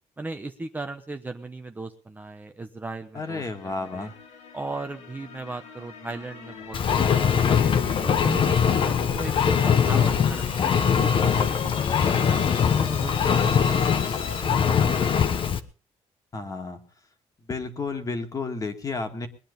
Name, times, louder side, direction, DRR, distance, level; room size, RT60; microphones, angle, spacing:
voice 1, 0.2-4.1 4.5-7.6 8.0-12.4 12.7-14.0 14.4-15.0 15.3-15.4, right 2 dB, 15° right, 5 dB, 1.0 m, -37 dB
voice 2, 3.1-4.1 16.3-16.8 17.5-19.3, left 3 dB, 30° left, 6 dB, 2.2 m, -32 dB
sound 1, 3.2-14.4, left 5 dB, 70° left, 2.6 m, -38 dB
Engine, 6.7-15.6, left 7 dB, 45° left, 1.2 m, -22 dB
21.0 x 10.0 x 5.4 m, 0.37 s
cardioid pair, 130°, 12 cm